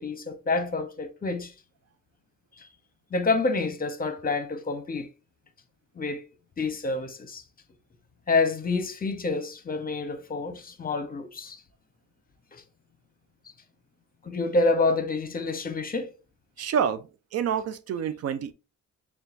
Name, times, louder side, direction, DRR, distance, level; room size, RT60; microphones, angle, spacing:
voice 1, 0.0-1.5 3.1-5.1 6.0-6.2 6.6-7.4 8.3-11.6 12.5-12.6 14.2-16.1, left 3 dB, 30° left, 0.8 m, -28 dB
voice 2, 16.6-17.0 17.3-18.5, right 8 dB, 55° right, 0.4 m, -27 dB
6.7 x 2.3 x 2.5 m
cardioid pair, 90°, 30 cm